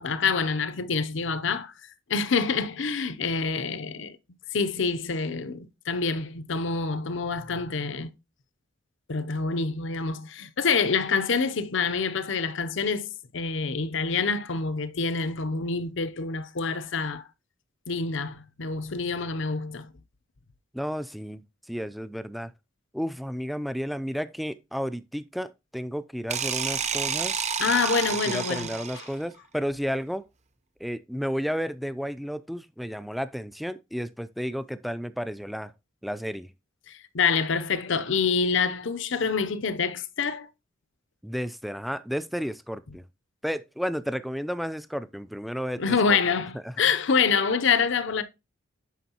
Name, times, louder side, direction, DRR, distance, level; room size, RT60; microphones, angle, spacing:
voice 1, 0.0-1.7 2.1-4.2 4.5-8.1 9.1-17.2 17.9-19.9 27.6-29.1 36.9-40.5 45.8-48.2, left 5 dB, 65° left, 0.7 m, -26 dB
voice 2, 20.7-21.4 21.7-22.5 22.9-27.4 28.3-30.3 30.8-35.7 36.0-36.5 41.2-43.0 43.4-46.2, equal, ahead, 0.3 m, -32 dB
sound 1, 26.3-29.2, right 7 dB, 35° right, 0.7 m, -29 dB
9.3 x 6.2 x 2.9 m
head